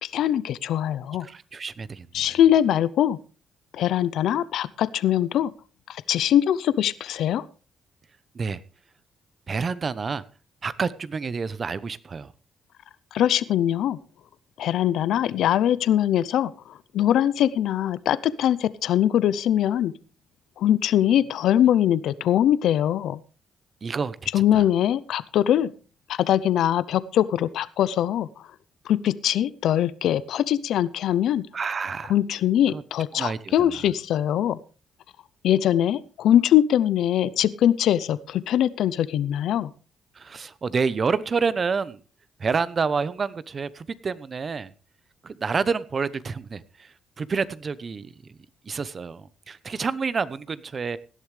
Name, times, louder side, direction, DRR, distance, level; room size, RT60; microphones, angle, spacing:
voice 1, 0.0-1.3 2.1-3.2 3.7-5.5 5.9-7.4 13.1-14.0 14.6-19.9 20.6-23.2 24.3-25.7 26.1-28.3 28.9-31.4 32.1-34.6 35.4-39.7, left 11 dB, 75° left, 17 dB, 0.6 m, -22 dB
voice 2, 1.2-2.2 8.3-8.6 9.5-10.2 10.6-12.3 23.8-24.2 24.5-24.7 31.5-32.1 32.7-32.8 33.1-33.8 34.4-34.5 40.1-42.0 42.4-44.7 45.2-48.3 48.6-51.0, right 5 dB, 40° right, 17 dB, 0.9 m, -28 dB
17.5 x 11.5 x 3.3 m, 0.35 s
cardioid pair, 90°, 0 cm